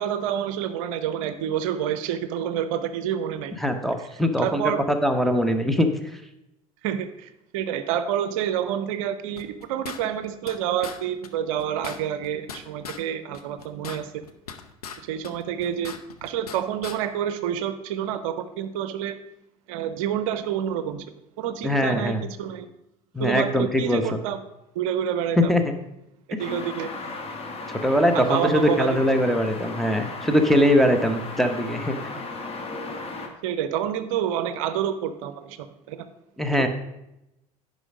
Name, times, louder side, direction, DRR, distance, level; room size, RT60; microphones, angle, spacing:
voice 1, 0.0-3.6 4.4-4.8 6.8-14.2 15.1-15.9 16.2-19.2 19.7-21.1 21.4-22.7 23.2-24.4 24.7-25.5 26.4-26.9 28.1-29.0 33.4-36.0, right 9 dB, 60° right, 12 dB, 0.6 m, -28 dB
voice 2, 3.6-4.6 5.0-6.2 21.6-22.2 23.1-24.0 25.4-25.6 26.3-26.6 27.7-32.0 36.4-36.7, equal, ahead, 5 dB, 1.1 m, -22 dB
sound 1, 9.4-10.6 10.8-11.0 11.2-11.3 11.6-13.0 13.3-15.0 15.2-16.6 16.8-17.0, left 7 dB, 80° left, 0.7 m, -38 dB
sound 2, 26.4-33.3, left 3 dB, 30° left, 1.6 m, -35 dB
9.8 x 5.4 x 5.1 m, 0.88 s
figure-of-eight pair, 70°, 19 cm